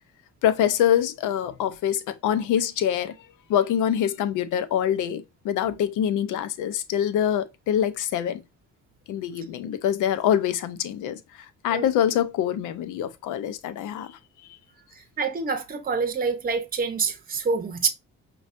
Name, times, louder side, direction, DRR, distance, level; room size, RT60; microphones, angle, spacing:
voice 1, 0.4-3.1 3.5-8.4 9.1-14.2, left 10 dB, 90° left, 0.5 m, -25 dB
voice 2, 15.2-17.9, right 5 dB, 30° right, 0.7 m, -26 dB
5.3 x 2.3 x 2.5 m
cardioid pair, 90°, 30 cm